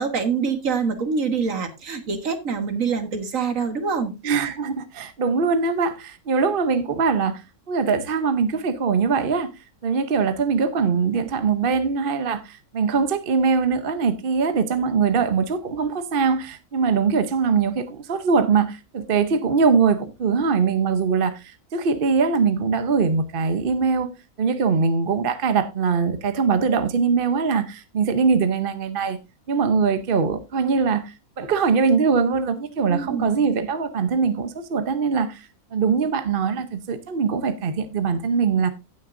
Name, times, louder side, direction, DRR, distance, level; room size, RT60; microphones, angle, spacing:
voice 1, 0.0-4.1 32.9-33.4, right 5 dB, 60° right, 1.8 m, -25 dB
voice 2, 4.2-9.5 9.8-24.1 24.4-29.2 29.5-38.7, right 5 dB, 45° right, 0.9 m, -22 dB
17.0 x 6.4 x 2.6 m
omnidirectional pair, 1.5 m